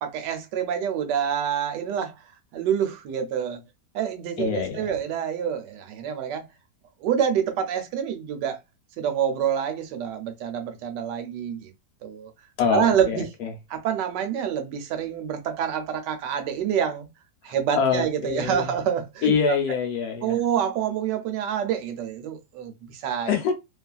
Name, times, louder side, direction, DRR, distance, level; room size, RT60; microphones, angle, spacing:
voice 1, 0.0-2.2 2.5-3.6 3.9-6.4 7.0-8.6 9.0-11.7 12.0-12.3 12.7-13.3 13.7-17.1 17.4-19.3 20.2-23.3, right 8 dB, 85° right, 1.3 m, -27 dB
voice 2, 4.4-4.8 12.6-13.5 17.8-18.7 19.2-20.4 23.3-23.5, left 6 dB, 70° left, 1.1 m, -25 dB
2.9 x 2.4 x 2.3 m
omnidirectional pair, 1.8 m